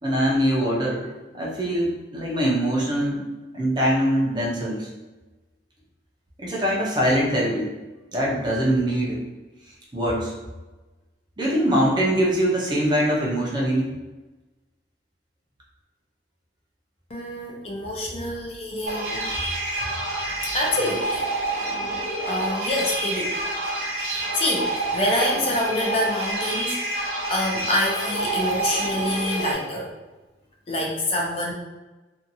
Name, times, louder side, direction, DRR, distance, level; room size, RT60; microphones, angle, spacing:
voice 1, 0.0-3.2 3.5-4.9 6.4-7.8 8.1-9.2 9.9-10.3 11.4-13.9, equal, 25° right, -4 dB, 0.6 m, -23 dB
voice 2, 17.1-19.3 20.5-21.3 22.2-23.4 23.9-29.9 30.7-31.5, left 1 dB, 35° left, -2 dB, 0.4 m, -27 dB
sound 1, 18.9-29.5, right 2 dB, 60° right, 0.7 m, -28 dB
2.6 x 2.4 x 2.6 m, 1.2 s
head